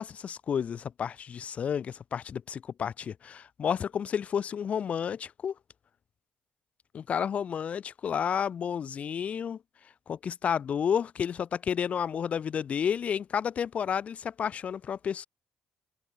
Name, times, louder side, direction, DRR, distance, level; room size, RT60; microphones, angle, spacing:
voice 1, 0.0-5.5 6.9-9.6 10.1-15.3, left 7 dB, 60° left, 2.7 m, -31 dB
supercardioid pair, 55°, 3 cm